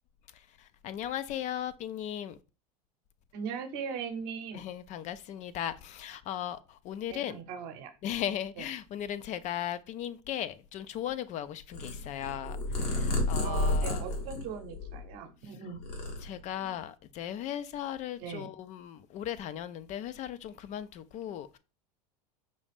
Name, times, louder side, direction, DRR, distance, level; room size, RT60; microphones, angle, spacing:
voice 1, 0.3-2.4 4.5-7.4 8.0-14.0 16.2-21.6, left 10 dB, 35° left, 0.4 m, -37 dB
voice 2, 3.3-4.6 7.1-7.9 8.6-8.7 13.4-15.8 18.2-18.5, right 6 dB, 55° right, 0.8 m, -39 dB
Purr, 11.7-15.3 15.6-16.7, left 1 dB, 80° left, 1.4 m, -31 dB
5.3 x 2.4 x 3.3 m
hypercardioid pair, 95°, 20 cm